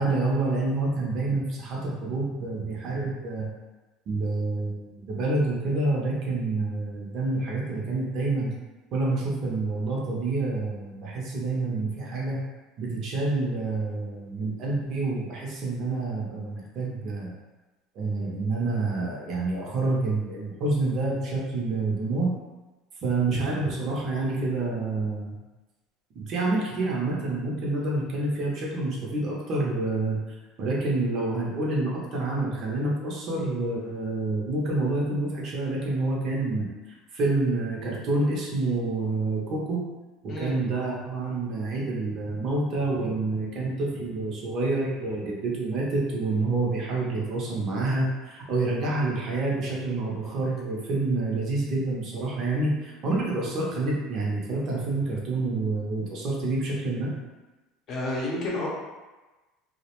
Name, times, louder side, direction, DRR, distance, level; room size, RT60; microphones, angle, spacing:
voice 1, 0.0-3.5 4.1-8.5 8.9-12.4 12.8-17.3 17.9-22.3 23.0-25.4 26.2-30.2 30.6-39.8 40.2-57.1, right 2 dB, 45° right, -3 dB, 0.6 m, -28 dB
voice 2, 57.9-58.7, left 2 dB, 40° left, -4 dB, 0.6 m, -30 dB
2.3 x 2.0 x 2.9 m, 1.2 s
cardioid pair, 145°, 0 cm